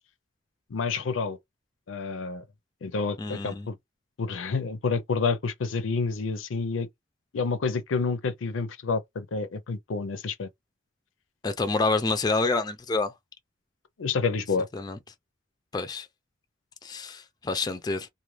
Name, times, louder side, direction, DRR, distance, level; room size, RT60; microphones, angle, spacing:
voice 1, 0.7-1.4 1.9-2.4 2.8-3.8 4.2-6.9 7.3-10.5 14.0-14.7, left 4 dB, 85° left, 0.5 m, -29 dB
voice 2, 3.2-3.7 11.4-13.1 14.7-15.0 15.7-16.1 16.8-18.1, left 3 dB, 20° left, 0.3 m, -28 dB
2.4 x 2.1 x 3.1 m
head